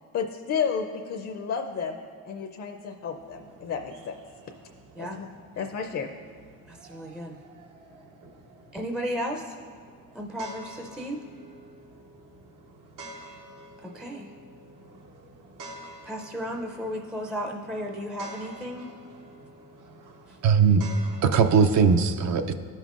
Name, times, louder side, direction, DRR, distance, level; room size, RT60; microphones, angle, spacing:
voice 1, 0.1-2.0 2.2-4.2 5.0-5.3 5.6-6.1, left 6 dB, 50° left, 3 dB, 0.5 m, -31 dB
sound 1, 3.0-22.0, right 1 dB, 80° right, 1.0 m, -48 dB
voice 2, 6.7-7.4 8.7-9.5 10.1-11.2 13.8-14.3 16.0-18.9 20.3-20.4, equal, ahead, 1 dB, 0.4 m, -34 dB
voice 3, 20.4-20.8 21.2-22.5, right 6 dB, 60° right, 8 dB, 0.5 m, -19 dB
14.0 x 5.4 x 2.4 m, 2.2 s
cardioid pair, 120°, 31 cm